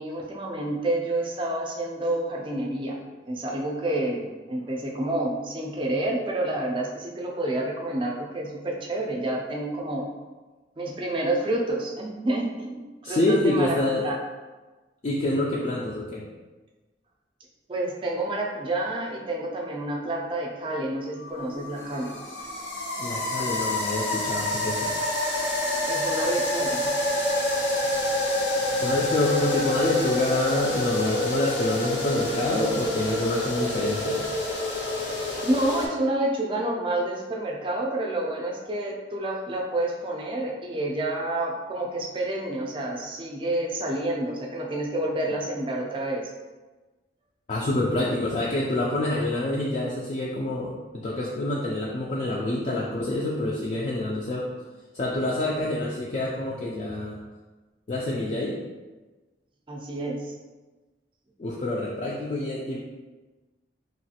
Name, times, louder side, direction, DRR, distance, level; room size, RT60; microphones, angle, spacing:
voice 1, 0.0-3.0 3.3-10.1 10.8-13.8 14.0-14.2 17.7-22.1 25.9-26.9 35.4-46.2 59.7-60.3, right 1 dB, 30° right, -1 dB, 0.4 m, -29 dB
voice 2, 13.0-14.1 15.0-16.3 23.0-24.9 28.8-34.2 47.5-54.5 54.9-57.2 57.9-58.6 61.4-62.8, left 2 dB, 40° left, -5 dB, 0.3 m, -27 dB
sound 1, 21.2-35.9, left 1 dB, 85° left, 0.6 m, -27 dB
3.0 x 2.4 x 2.8 m, 1.2 s
head